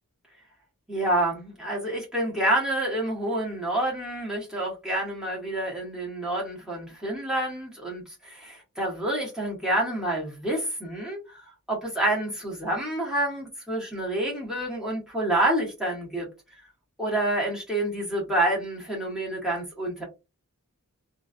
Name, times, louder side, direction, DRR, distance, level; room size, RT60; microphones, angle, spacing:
voice 1, 0.9-16.3 17.0-20.0, right 1 dB, 5° right, 1.4 m, -28 dB
3.3 x 2.6 x 2.2 m
head